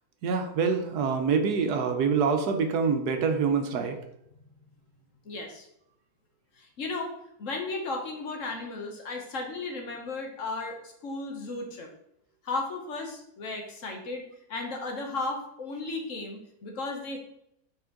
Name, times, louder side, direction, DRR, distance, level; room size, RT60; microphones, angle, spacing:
voice 1, 0.2-4.0, right 5 dB, 80° right, 5 dB, 1.3 m, -25 dB
voice 2, 5.2-5.7 6.5-7.1 7.4-11.9 12.4-17.2, left 3 dB, 55° left, 2 dB, 1.3 m, -35 dB
5.8 x 4.4 x 3.8 m, 0.76 s
omnidirectional pair, 1.7 m